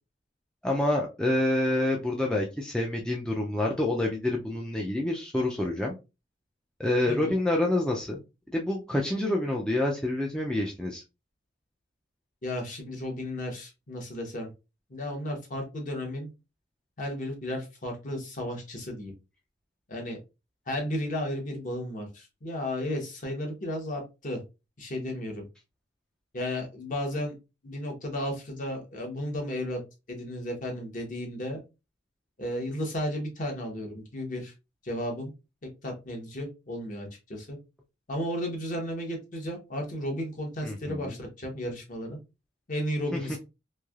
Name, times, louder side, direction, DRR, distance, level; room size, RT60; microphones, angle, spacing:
voice 1, 0.6-5.9 6.8-8.2 8.5-11.0 40.6-41.2 43.1-43.4, left 1 dB, 5° left, -1 dB, 0.4 m, -27 dB
voice 2, 7.1-7.4 12.4-14.5 14.9-16.3 17.0-19.1 19.9-20.2 20.7-24.4 24.8-25.4 26.3-27.3 27.6-29.8 30.1-31.6 32.4-34.5 34.8-35.3 35.8-37.6 38.1-42.2 42.7-43.4, left 1 dB, 45° left, 1 dB, 0.9 m, -34 dB
3.2 x 2.6 x 2.3 m, 0.27 s
head